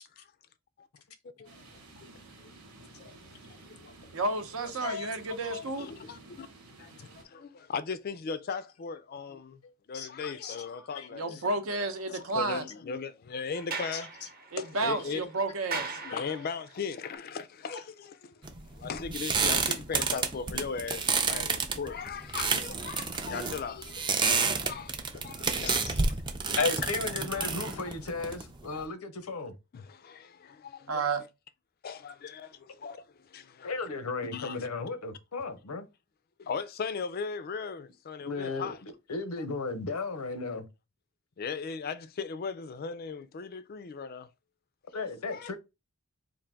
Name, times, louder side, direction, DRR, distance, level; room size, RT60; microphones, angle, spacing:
voice 1, 1.4-2.1 2.4-2.5 3.0-3.2 3.5-4.2 5.8-6.5 6.8-9.6 9.9-11.4 12.3-14.1 14.6-15.2 16.1-24.1 24.6-26.6 27.1-27.5 28.1-28.3 28.7-28.9 29.7-30.9 31.8-33.7 34.3-34.7 36.4-38.8 41.4-44.3 44.9-45.6, left 5 dB, 45° left, 0.4 m, -38 dB
sound 1, 1.4-7.2, right 2 dB, 90° right, 1.2 m, -53 dB
voice 2, 4.1-5.9 11.1-12.7 14.5-16.0 30.9-31.2, right 3 dB, 70° right, 0.7 m, -31 dB
voice 3, 4.8-5.1 5.4-5.6 9.9-10.6 10.9-11.1 16.1-16.2 17.7-17.8 25.6-25.9 26.6-29.5 33.6-35.9 38.2-38.8 39.1-40.7 44.9-45.6, left 4 dB, 90° left, 0.7 m, -34 dB
Sliding door, 13.5-16.8, right 4 dB, 45° right, 0.9 m, -40 dB
sound 2, 18.4-28.8, right 4 dB, 20° right, 0.4 m, -30 dB
3.8 x 2.6 x 3.4 m
head